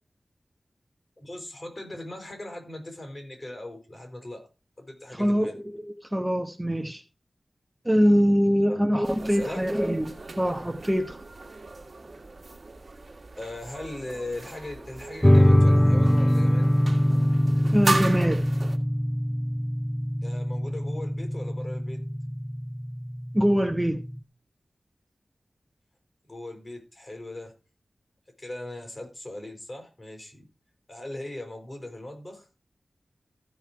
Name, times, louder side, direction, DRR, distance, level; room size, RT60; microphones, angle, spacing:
voice 1, 1.2-4.4 4.8-5.5 8.7-8.8 9.2-9.6 13.4-16.7 20.2-22.0 26.3-27.5 28.4-30.5 30.9-32.5, left 1 dB, 45° left, 5.7 m, -39 dB
voice 2, 5.1-7.0 7.8-11.2 17.7-18.4 23.3-24.0, equal, 10° right, 1.2 m, -24 dB
sound 1, 9.0-18.8, right 2 dB, 50° right, 1.9 m, -36 dB
sound 2, 15.2-24.2, equal, 15° left, 0.7 m, -23 dB
15.0 x 5.6 x 4.7 m
cardioid pair, 50°, 0 cm